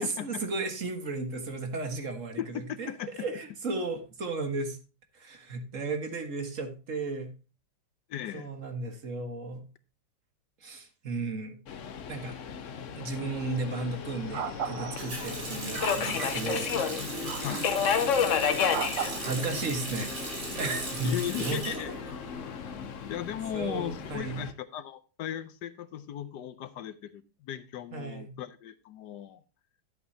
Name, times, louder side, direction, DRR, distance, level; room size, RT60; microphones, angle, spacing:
voice 1, 0.0-2.9 3.2-4.8 5.1-7.3 8.3-9.6 10.6-11.6 12.1-12.3 13.0-16.8 19.2-20.1 20.6-21.8 23.5-24.4 27.9-28.3, right 3 dB, 45° right, 6 dB, 1.8 m, -34 dB
voice 2, 2.4-3.3 8.1-8.5 17.4-17.7 21.0-21.9 23.1-29.4, left 10 dB, 70° left, 13 dB, 1.2 m, -37 dB
Subway metro underground, 11.7-24.5, left 7 dB, 55° left, 1.0 m, -33 dB
sound 1, 13.4-13.6 14.3-15.4 15.8-16.4 17.3-17.8 18.7-19.2, right 8 dB, 80° right, 1.6 m, -36 dB
Water tap faucet, 15.0-22.7 23.0-24.1, right 2 dB, 60° right, 4.0 m, -38 dB
12.0 x 8.1 x 2.8 m, 0.32 s
omnidirectional pair, 2.0 m